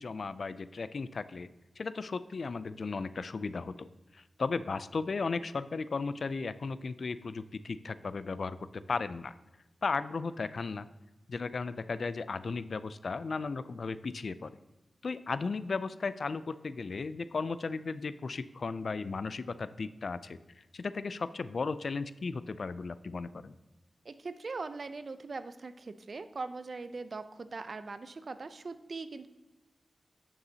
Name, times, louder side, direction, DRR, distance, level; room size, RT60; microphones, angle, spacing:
voice 1, 0.0-1.5 1.8-8.6 8.9-9.3 9.8-10.9 11.3-14.5 15.0-23.5, left 4 dB, 65° left, 14 dB, 0.3 m, -35 dB
voice 2, 24.0-29.3, right 3 dB, 55° right, 12 dB, 0.5 m, -41 dB
9.5 x 6.8 x 2.8 m, 1.1 s
cardioid pair, 65°, 0 cm